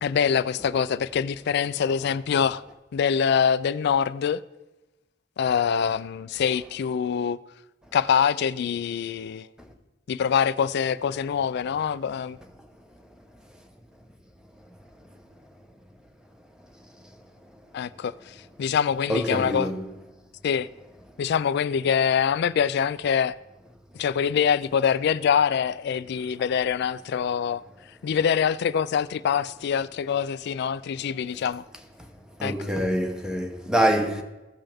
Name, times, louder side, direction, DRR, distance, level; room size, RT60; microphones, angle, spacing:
voice 1, 0.0-2.6 2.9-4.4 5.4-7.4 7.9-9.5 10.1-12.4 17.7-19.7 20.4-20.7 21.2-23.4 24.0-27.6 28.0-31.6 32.4-32.5, left 7 dB, 60° left, 0.3 m, -24 dB
voice 2, 19.1-19.9 32.4-34.2, equal, 5° right, 0.9 m, -25 dB
16.0 x 5.5 x 3.5 m
head